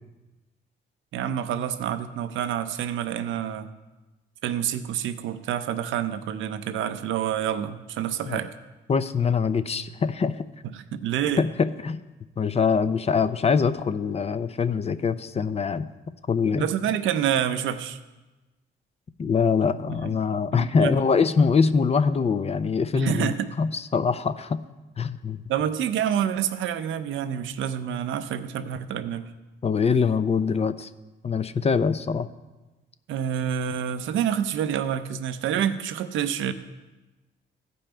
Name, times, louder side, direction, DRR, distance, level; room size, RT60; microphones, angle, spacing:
voice 1, 1.1-3.7 4.4-8.6 10.7-11.4 16.6-18.0 20.0-20.2 20.5-21.0 22.9-23.5 25.5-29.3 33.1-36.5, right 9 dB, 80° right, 11 dB, 0.6 m, -27 dB
voice 2, 8.9-10.4 11.4-12.0 12.4-15.9 16.3-16.7 19.2-24.6 25.0-25.4 29.6-30.9 31.2-32.3, left 5 dB, 30° left, 13 dB, 0.5 m, -23 dB
15.0 x 5.4 x 4.4 m, 1.1 s
cardioid pair, 90°, 20 cm